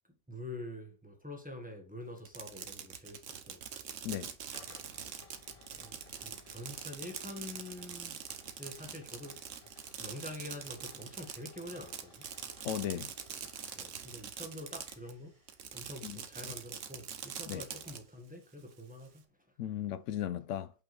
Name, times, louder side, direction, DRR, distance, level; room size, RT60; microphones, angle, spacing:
voice 1, 0.3-3.7 5.8-8.2 8.6-9.4 10.0-12.3 13.8-15.4 15.7-19.5, left 1 dB, 5° right, 1.5 m, -46 dB
Fireworks, 2.2-15.1 15.5-18.0, right 8 dB, 85° right, 1.2 m, -44 dB
sound 1, 4.1-16.6, left 4 dB, 35° left, 0.8 m, -60 dB
voice 2, 12.6-13.1 16.0-16.2 17.5-17.6 19.6-20.7, left 10 dB, 80° left, 0.9 m, -36 dB
6.7 x 5.8 x 3.2 m
omnidirectional pair, 1.3 m